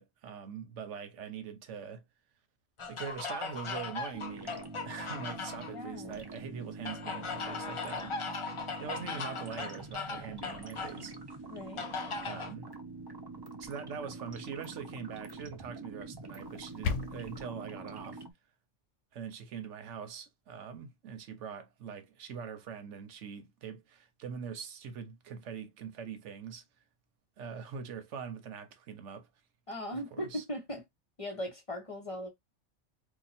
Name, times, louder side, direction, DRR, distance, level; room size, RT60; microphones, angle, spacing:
voice 1, 0.0-2.0 2.9-8.3 8.8-11.1 12.2-12.7 13.6-18.2 19.1-26.6 27.4-29.3 29.9-30.4, right 7 dB, 85° right, 1.1 m, -43 dB
sound 1, 2.8-5.7 6.8-11.0 11.8-12.5, left 4 dB, 50° left, 0.3 m, -38 dB
sound 2, 4.1-18.3, right 3 dB, 30° right, 0.4 m, -45 dB
voice 2, 5.7-6.2 11.5-11.9 29.7-30.8 31.2-32.3, equal, 30° left, 0.8 m, -39 dB
sound 3, 16.4-17.4, left 6 dB, 85° left, 0.9 m, -35 dB
2.8 x 2.3 x 4.1 m
omnidirectional pair, 1.2 m